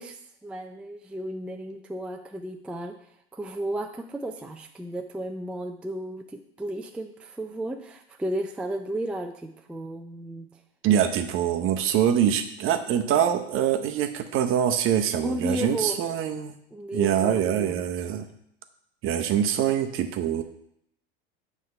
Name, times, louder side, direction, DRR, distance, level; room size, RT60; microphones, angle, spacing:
voice 1, 0.0-3.0 3.3-10.5 15.2-16.0 16.7-17.9, right 1 dB, 5° right, 4 dB, 0.4 m, -33 dB
voice 2, 10.8-16.5 16.9-18.2 19.0-20.4, right 9 dB, 40° right, 7 dB, 0.8 m, -24 dB
7.6 x 3.6 x 5.5 m, 0.72 s
hypercardioid pair, 90°, 31 cm